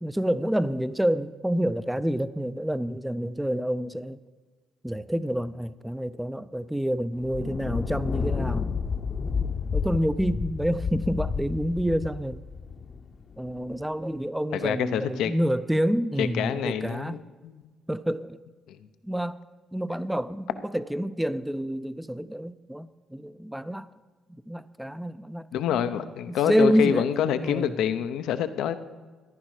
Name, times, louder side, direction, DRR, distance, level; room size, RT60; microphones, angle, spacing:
voice 1, 0.0-4.2 4.8-8.7 9.7-12.4 13.4-17.2 17.9-18.4 19.0-19.4 19.7-23.9 24.3-26.0 26.3-27.7, equal, 5° right, 0.5 m, -28 dB
Thunder, 7.2-13.8, left 5 dB, 45° left, 0.8 m, -31 dB
voice 2, 14.5-15.3 16.2-17.7 18.7-18.8 25.5-28.8, left 9 dB, 80° left, 0.7 m, -27 dB
14.0 x 11.0 x 4.8 m
cardioid pair, 75°, 0 cm